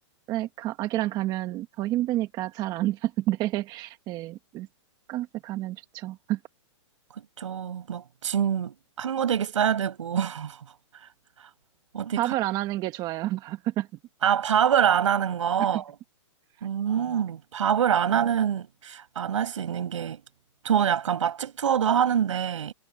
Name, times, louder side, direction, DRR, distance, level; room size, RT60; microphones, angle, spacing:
voice 1, 0.3-4.7 5.1-6.4 12.2-13.9 15.7-15.8 17.0-17.1, right 15 dB, 25° right, 1.4 m, -29 dB
voice 2, 7.4-10.6 11.9-12.3 14.2-15.8 16.6-20.2 20.6-22.7, right 8 dB, 80° right, 6.9 m, -25 dB
hypercardioid pair, 155°, 16 cm